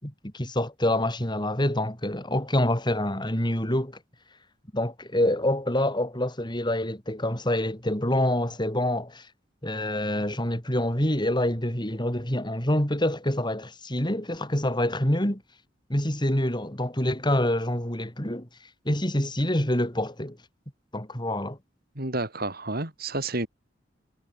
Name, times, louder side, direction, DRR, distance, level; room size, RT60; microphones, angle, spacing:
voice 1, 0.0-4.0 4.7-9.3 9.6-15.4 15.9-18.5 18.8-20.4 20.9-21.6, left 1 dB, 25° left, 6.0 m, -26 dB
voice 2, 22.0-23.5, right 2 dB, 55° right, 5.8 m, -30 dB
head